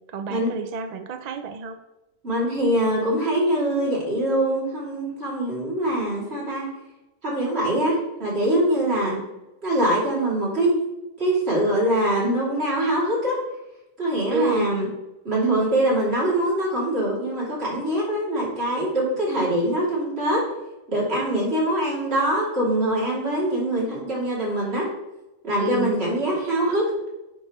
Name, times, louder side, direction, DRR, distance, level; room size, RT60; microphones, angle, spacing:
voice 1, 0.0-1.8 14.3-14.7 25.6-25.9, right 5 dB, 50° right, 9 dB, 0.5 m, -29 dB
voice 2, 2.2-6.6 7.2-9.2 9.6-10.8 11.2-13.4 14.0-14.9 15.2-20.4 20.9-24.9 25.4-26.9, right 1 dB, 75° right, -6 dB, 3.1 m, -23 dB
9.3 x 5.4 x 3.1 m, 0.97 s
omnidirectional pair, 1.1 m